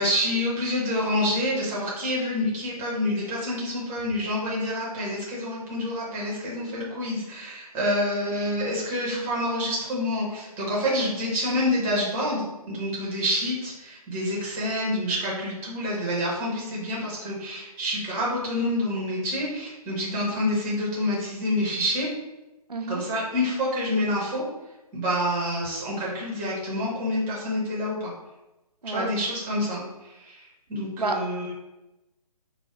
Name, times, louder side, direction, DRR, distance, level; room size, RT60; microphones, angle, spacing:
voice 1, 0.0-22.1 22.9-24.4 24.9-28.1 28.9-31.5, left 1 dB, 10° right, -5 dB, 0.6 m, -27 dB
voice 2, 22.7-23.0 28.8-29.1 31.0-31.2, right 3 dB, 85° right, 4 dB, 0.5 m, -29 dB
4.5 x 2.0 x 3.2 m, 1.0 s
figure-of-eight pair, 140°, 20 cm